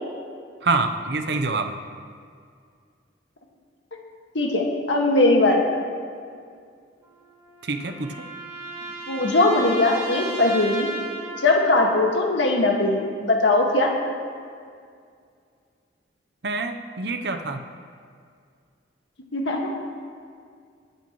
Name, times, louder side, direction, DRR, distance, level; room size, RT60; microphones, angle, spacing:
voice 1, 0.6-1.7 7.6-8.3 16.4-17.6, right 3 dB, 65° right, 6 dB, 0.7 m, -26 dB
voice 2, 4.3-5.7 9.1-10.9 11.4-13.9 19.3-19.7, left 2 dB, 85° left, 1 dB, 1.7 m, -20 dB
sound 1, 7.0-11.8, right 2 dB, 20° right, 2.2 m, -35 dB
21.0 x 9.0 x 3.0 m, 2.2 s
head